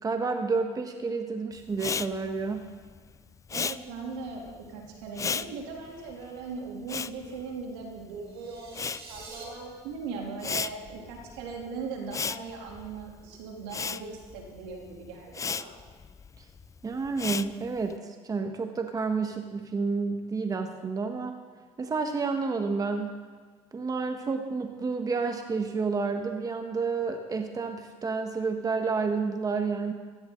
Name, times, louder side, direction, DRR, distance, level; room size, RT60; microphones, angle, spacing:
voice 1, 0.0-2.7 16.4-16.5 16.8-21.3 21.8-23.2 23.7-29.9, right 4 dB, 25° right, 5 dB, 1.3 m, -30 dB
Respiratory sounds, 1.7-8.2 8.5-17.9, left 6 dB, 20° left, 0.4 m, -36 dB
voice 2, 3.5-4.4 4.7-15.7, right 4 dB, 80° right, 0 dB, 3.2 m, -39 dB
sound 1, 8.2-9.4, right 4 dB, 40° right, 4.3 m, -46 dB
16.0 x 15.0 x 3.9 m, 1.5 s
supercardioid pair, 90°, 14 cm